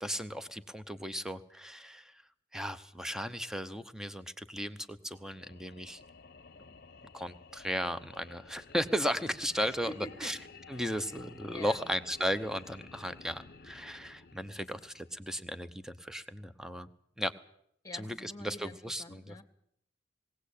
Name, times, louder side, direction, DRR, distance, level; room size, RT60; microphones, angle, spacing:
voice 1, 0.0-2.2 2.5-6.0 7.1-9.9 10.2-10.4 10.7-16.9 17.2-17.3 17.9-19.4, equal, 5° right, 11 dB, 0.9 m, -35 dB
sound 1, 5.1-15.5, left 4 dB, 55° left, 0.9 m, -54 dB
voice 2, 9.7-10.4 10.8-11.1 11.5-11.9 14.7-14.8 17.8-19.4, left 1 dB, 20° left, 8 dB, 1.8 m, -47 dB
20.5 x 17.5 x 8.5 m, 0.72 s
head